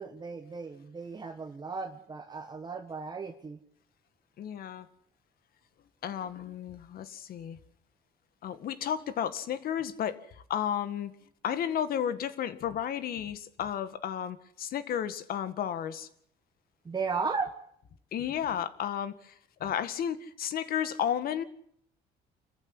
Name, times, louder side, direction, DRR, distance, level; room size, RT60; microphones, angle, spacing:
voice 1, 0.0-3.6 16.8-17.5, right 4 dB, 25° right, 6 dB, 1.6 m, -35 dB
voice 2, 4.4-4.9 6.0-7.6 8.4-10.2 10.5-11.1 11.4-16.1 18.1-19.3 19.6-21.4, left 9 dB, 60° left, 12 dB, 2.0 m, -33 dB
27.0 x 15.0 x 9.9 m, 0.67 s
cardioid pair, 110°, 17 cm